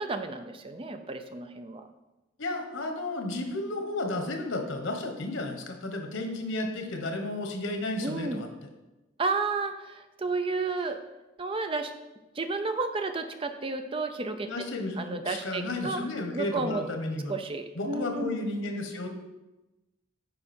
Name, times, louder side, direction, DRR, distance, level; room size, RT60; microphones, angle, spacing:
voice 1, 0.0-1.9 8.0-8.4 9.2-11.0 11.4-11.9 12.3-14.5 15.0-16.0 16.3-16.8 17.3-18.4, right 3 dB, 25° right, 7 dB, 0.5 m, -32 dB
voice 2, 2.4-8.5 14.5-17.4 17.8-19.1, left 2 dB, 85° left, 4 dB, 1.3 m, -33 dB
9.9 x 4.8 x 4.4 m, 1.0 s
head